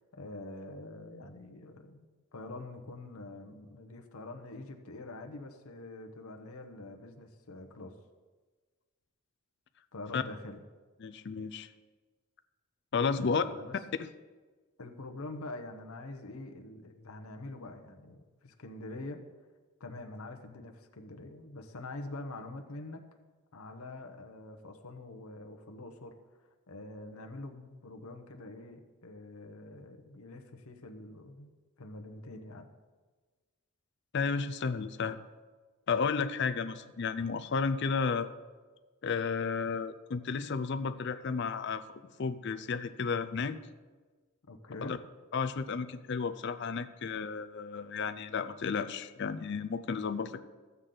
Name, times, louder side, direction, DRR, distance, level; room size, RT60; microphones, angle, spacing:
voice 1, 0.0-8.0 9.9-10.6 13.1-13.7 14.8-19.2 19.8-23.1 23.5-26.2 26.7-31.5 31.8-32.7 44.4-44.9, left 2 dB, 85° left, 5 dB, 0.9 m, -45 dB
voice 2, 11.0-11.7 12.9-13.4 14.0-14.1 34.1-35.2 35.9-38.3 39.0-41.8 42.2-43.6 44.8-45.0 45.3-50.4, left 5 dB, 55° left, 11 dB, 0.5 m, -32 dB
13.5 x 8.1 x 3.8 m, 1.4 s
head